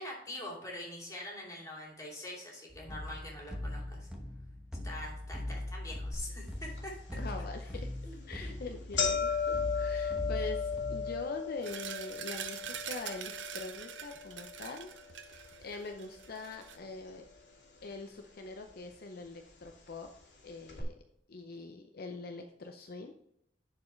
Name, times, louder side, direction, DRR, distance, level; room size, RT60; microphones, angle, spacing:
voice 1, 0.0-4.1 4.8-6.9 8.0-8.5, left 1 dB, 20° left, -3 dB, 2.7 m, -44 dB
sound 1, 2.7-11.2, left 1 dB, 5° right, 1.1 m, -40 dB
sound 2, 6.1-6.2 6.8-6.9 7.7-7.9 8.2-8.3 8.6-16.8 17.1-17.8 18.6-18.7 19.6-19.7 20.0-20.1 20.7-20.8, left 6 dB, 85° left, 2.5 m, -36 dB
voice 2, 7.2-7.9 8.3-14.9 15.2-17.3 17.8-20.1 20.4-21.0 21.3-23.1, left 3 dB, 60° left, 4 dB, 0.6 m, -43 dB
sound 3, 11.6-16.8, right 9 dB, 90° right, 0.7 m, -44 dB
10.5 x 4.8 x 3.2 m, 0.77 s
head